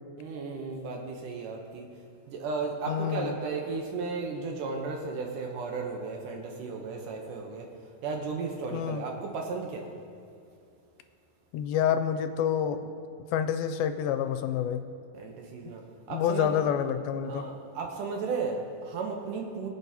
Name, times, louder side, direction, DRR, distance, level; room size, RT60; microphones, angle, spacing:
voice 1, 0.2-1.9 2.3-7.7 8.0-9.9 15.1-15.8 16.1-16.5 17.3-19.7, right 4 dB, 70° right, 1 dB, 2.4 m, -34 dB
voice 2, 2.9-3.3 8.7-9.0 11.5-12.8 13.3-14.9 16.1-17.5, left 9 dB, 85° left, 9 dB, 2.4 m, -28 dB
21.5 x 8.4 x 3.0 m, 2.5 s
omnidirectional pair, 4.2 m